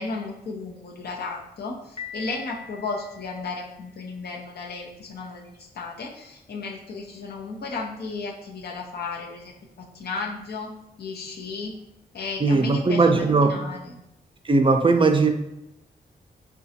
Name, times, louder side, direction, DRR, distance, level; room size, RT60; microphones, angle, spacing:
voice 1, 0.0-10.7 11.0-11.8 12.1-14.0, left 4 dB, 75° left, -1 dB, 0.7 m, -34 dB
Piano, 2.0-3.9, left 5 dB, 35° left, 0.7 m, -41 dB
voice 2, 12.4-13.6 14.4-15.3, right 3 dB, 30° right, 5 dB, 0.4 m, -19 dB
4.9 x 2.2 x 2.7 m, 0.86 s
cardioid pair, 55°, 17 cm